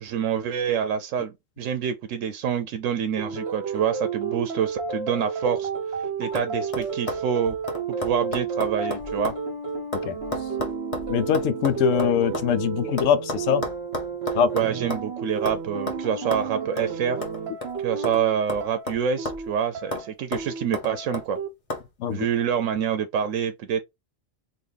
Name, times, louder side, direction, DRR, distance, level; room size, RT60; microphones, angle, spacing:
voice 1, 0.0-5.7 6.0-7.6 7.9-9.3 14.5-17.2 17.8-21.4 22.1-23.8, right 8 dB, 85° right, 0.9 m, -27 dB
sound 1, 3.2-21.5, right 5 dB, 60° right, 1.4 m, -32 dB
sound 2, 5.6-6.0 6.3-6.5 6.7-9.4 9.7-12.5 13.0-15.1 15.5-15.6 15.9-16.0 16.3-16.5 16.8-16.9 17.2-18.2 18.5-19.5 19.9-20.1 20.3-21.3 21.7-21.8, left 1 dB, 30° left, 0.9 m, -33 dB
voice 2, 11.1-13.6 14.3-14.5 22.0-22.3, left 8 dB, 90° left, 1.0 m, -22 dB
3.9 x 2.4 x 3.3 m
omnidirectional pair, 1.3 m